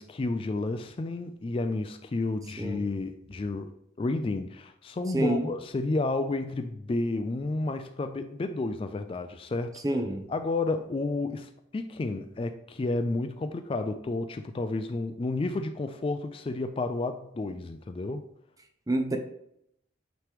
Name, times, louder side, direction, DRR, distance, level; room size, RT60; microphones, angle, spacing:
voice 1, 0.0-3.7 4.0-9.7 10.3-18.3, left 2 dB, 30° left, 0.3 m, -31 dB
voice 2, 5.1-5.5 9.8-10.3 18.9-19.2, right 1 dB, 20° right, 0.6 m, -27 dB
9.0 x 3.1 x 3.3 m
head